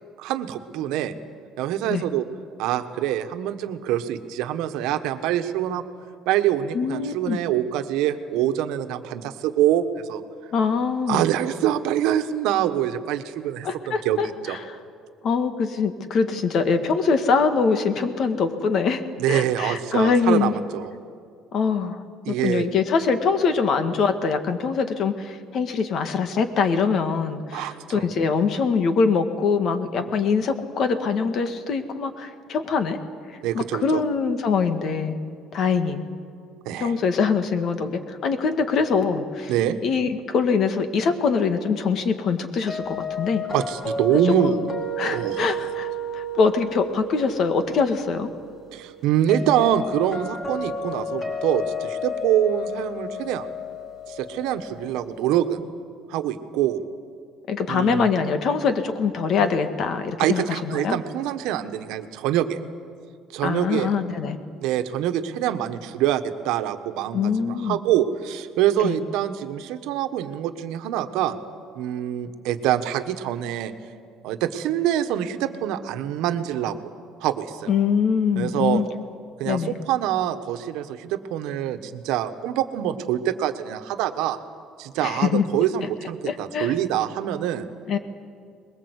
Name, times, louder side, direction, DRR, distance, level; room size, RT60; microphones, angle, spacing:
voice 1, 0.2-1.1 1.6-2.2 2.6-5.8 6.2-10.2 11.1-14.2 14.4-14.6 19.2-20.9 22.2-22.7 27.5-28.1 33.4-34.0 36.6-37.0 39.5-39.8 43.5-44.6 45.1-45.5 48.7-53.5 54.1-55.6 56.1-56.8 57.7-58.1 60.2-62.6 63.3-63.9 64.6-71.4 71.7-73.7 74.2-76.8 77.2-77.7 78.4-78.8 79.4-84.4 84.8-87.6, right 11 dB, 80° right, 9 dB, 1.3 m, -25 dB
voice 2, 6.7-7.4 10.5-11.2 13.6-14.7 15.2-19.0 19.3-20.5 21.5-33.0 33.5-35.2 35.5-36.0 36.8-39.5 39.8-43.4 44.4-44.6 45.0-48.3 57.5-61.0 63.4-64.4 67.1-67.8 68.8-69.0 77.7-78.8 79.4-79.8 85.0-85.4 86.2-86.7 87.9-88.0, left 5 dB, 50° left, 8 dB, 1.8 m, -23 dB
sound 1, 42.7-55.5, left 1 dB, 35° left, 4.1 m, -32 dB
22.5 x 21.0 x 8.2 m, 2.3 s
cardioid pair, 135°, 0 cm